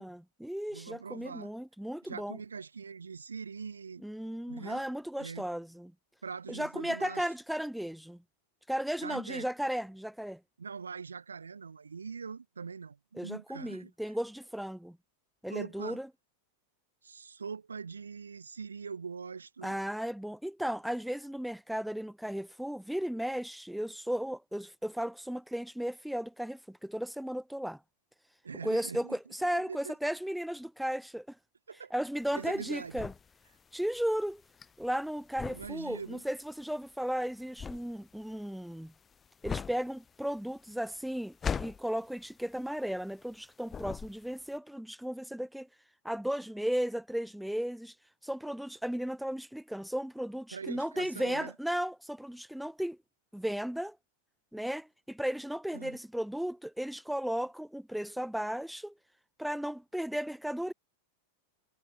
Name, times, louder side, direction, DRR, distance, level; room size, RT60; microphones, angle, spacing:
voice 1, 0.0-2.4 4.0-5.9 6.5-8.2 8.7-10.4 13.2-15.0 15.4-16.1 19.6-27.8 28.6-31.4 31.9-33.1 33.7-34.4 34.8-38.9 39.4-45.7 46.0-48.0 48.2-53.0 53.3-54.0 54.5-58.9 59.4-60.7, equal, ahead, 0.4 m, -35 dB
voice 2, 0.7-1.5 2.0-4.0 4.5-4.8 5.2-5.5 6.2-7.2 9.0-9.5 10.6-13.9 15.5-16.0 17.0-19.8 28.4-29.2 29.7-29.9 31.7-31.9 32.3-33.1 35.5-36.2 50.5-51.5 55.7-56.0, right 5 dB, 75° right, 4.8 m, -42 dB
sound 1, 32.2-43.4 43.7-44.5, left 6 dB, 20° left, 3.1 m, -40 dB
figure-of-eight pair, 90°, 0 cm